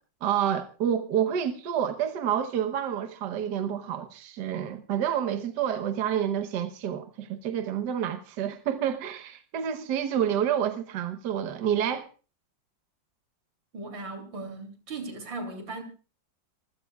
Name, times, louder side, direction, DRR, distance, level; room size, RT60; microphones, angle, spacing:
voice 1, 0.2-12.1, right 9 dB, 65° right, 1.6 m, -28 dB
voice 2, 13.7-15.8, right 2 dB, 85° right, 3.6 m, -37 dB
25.5 x 15.5 x 2.3 m
omnidirectional pair, 2.0 m